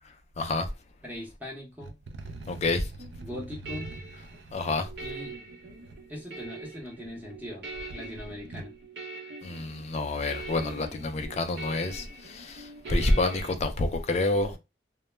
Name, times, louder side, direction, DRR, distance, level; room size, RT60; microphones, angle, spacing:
voice 1, 0.4-0.7 2.5-2.9 4.5-4.9 9.4-14.6, left 2 dB, 40° left, 0.4 m, -28 dB
voice 2, 1.0-2.0 3.2-3.9 5.0-5.4 6.1-7.6 7.9-8.7, left 1 dB, 10° right, 0.8 m, -40 dB
sound 1, 1.8-6.0 6.8-7.5 7.8-8.8, right 3 dB, 80° right, 0.4 m, -44 dB
sound 2, 3.0-13.5, right 2 dB, 65° right, 0.8 m, -43 dB
2.2 x 2.1 x 3.1 m
head